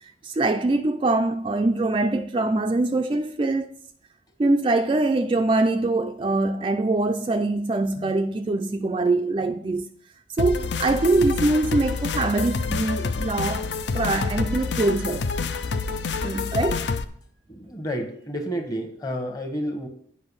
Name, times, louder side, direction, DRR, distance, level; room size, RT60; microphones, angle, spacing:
voice 1, 0.2-3.7 4.4-9.9 10.4-13.7 13.9-15.3 16.2-16.9, right 2 dB, 30° right, 0.3 m, -23 dB
sound 1, 10.4-17.0, left 4 dB, 75° left, 0.6 m, -27 dB
voice 2, 17.5-19.9, equal, 20° left, 1.1 m, -30 dB
8.7 x 5.3 x 5.5 m
head